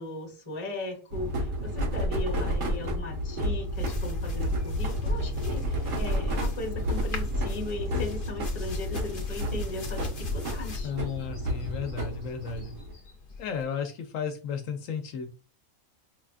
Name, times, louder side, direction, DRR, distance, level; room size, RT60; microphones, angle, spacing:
voice 1, 0.0-10.9, left 2 dB, 25° left, 0 dB, 1.1 m, -38 dB
sound 1, 1.1-12.9, equal, 80° right, 1.5 m, -31 dB
sound 2, 3.6-13.6, left 4 dB, 45° left, 0.8 m, -41 dB
voice 2, 10.8-12.8 13.4-15.3, left 6 dB, 70° left, 6 dB, 1.0 m, -34 dB
5.4 x 2.3 x 2.4 m, 0.36 s
omnidirectional pair, 1.5 m